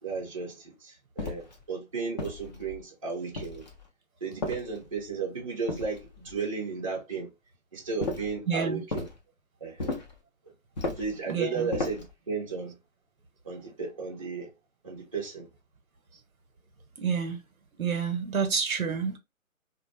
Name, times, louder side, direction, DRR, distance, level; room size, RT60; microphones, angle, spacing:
voice 1, 0.0-3.7 4.2-7.3 7.7-9.1 9.6-10.0 10.4-10.5 11.0-12.8 13.4-14.5 14.8-15.5, right 5 dB, 25° right, 0.5 m, -34 dB
sound 1, 1.2-1.6 2.2-2.8 3.3-3.9 4.4-5.1 5.7-6.4 8.0-8.4 8.9-9.2 9.8-10.2 10.8-11.2 11.7-12.1, left 2 dB, 30° left, 0.5 m, -35 dB
voice 2, 8.5-8.8 11.3-11.7 17.0-17.4 17.8-19.2, right 6 dB, 85° right, 0.8 m, -28 dB
2.5 x 2.1 x 3.0 m
figure-of-eight pair, 145°, 42 cm